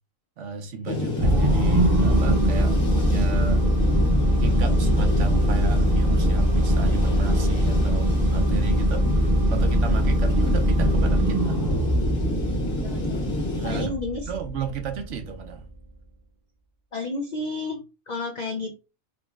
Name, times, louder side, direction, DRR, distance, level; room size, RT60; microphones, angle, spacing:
voice 1, 0.4-3.7 4.4-11.7 13.5-15.6, right 5 dB, 70° right, 1.0 m, -34 dB
sound 1, 0.9-13.9, left 2 dB, 45° left, 1.2 m, -29 dB
sound 2, 1.2-15.7, right 1 dB, 30° right, 0.8 m, -22 dB
voice 2, 12.8-13.2 13.6-14.3 16.9-18.8, left 2 dB, 65° left, 0.4 m, -31 dB
3.8 x 2.9 x 2.3 m
omnidirectional pair, 1.3 m